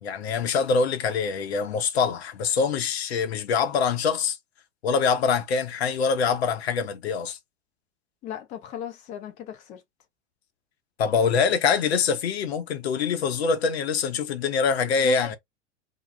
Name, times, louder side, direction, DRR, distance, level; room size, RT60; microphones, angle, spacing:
voice 1, 0.0-4.4 4.8-7.4 11.0-15.4, left 5 dB, 60° left, 0.7 m, -24 dB
voice 2, 8.2-9.8 15.0-15.3, left 10 dB, 20° left, 0.4 m, -37 dB
2.3 x 2.0 x 3.1 m
figure-of-eight pair, 85°, 36 cm